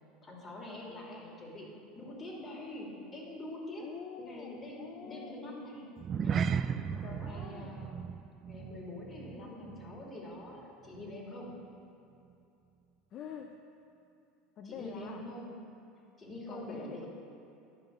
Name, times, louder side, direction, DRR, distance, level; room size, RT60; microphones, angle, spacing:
voice 1, 0.2-3.9 4.2-5.9 6.2-6.5 7.2-8.0 8.5-11.5 14.6-15.5 16.2-17.1, left 1 dB, 30° left, -2 dB, 2.3 m, -45 dB
voice 2, 0.9-1.2 3.8-5.5 7.0-7.7 13.1-13.6 14.6-15.2 16.5-17.0, left 7 dB, 50° left, 3 dB, 0.5 m, -47 dB
sound 1, 6.0-10.6 10.9-11.2 11.6-11.7, right 7 dB, 40° right, 0.3 m, -36 dB
11.0 x 5.3 x 5.3 m, 2.7 s
hypercardioid pair, 80°, 0 cm